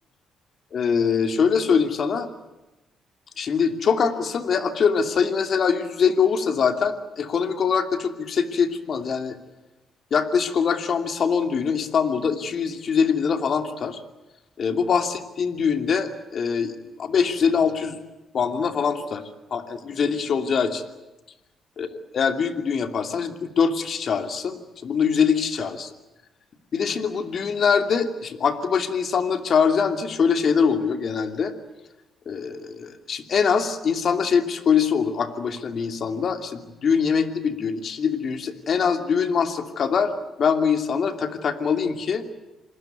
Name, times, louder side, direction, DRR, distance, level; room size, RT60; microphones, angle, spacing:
voice 1, 0.7-2.3 3.4-9.4 10.1-14.0 14.6-16.7 17.0-18.0 18.3-19.2 19.5-20.8 21.8-25.9 26.7-31.5 32.3-40.1 40.4-42.2, left 6 dB, 55° left, 7 dB, 2.8 m, -23 dB
27.0 x 20.5 x 9.3 m, 1.0 s
cardioid pair, 90°, 0 cm